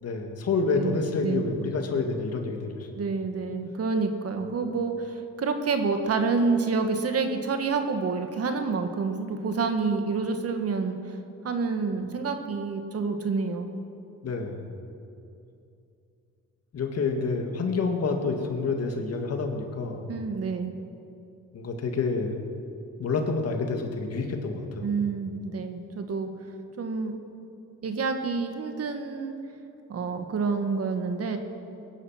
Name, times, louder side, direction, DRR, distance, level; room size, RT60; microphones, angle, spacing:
voice 1, 0.0-2.9 14.2-14.7 16.7-20.1 21.5-22.4 23.0-24.9, left 4 dB, 55° left, 3 dB, 2.2 m, -28 dB
voice 2, 0.7-1.5 2.9-11.2 11.4-13.7 20.1-20.7 24.8-26.3 26.8-27.2 27.8-29.3 29.9-31.4, right 4 dB, 55° right, 6 dB, 1.7 m, -28 dB
20.0 x 11.0 x 5.8 m, 2.6 s
cardioid pair, 90°, 30 cm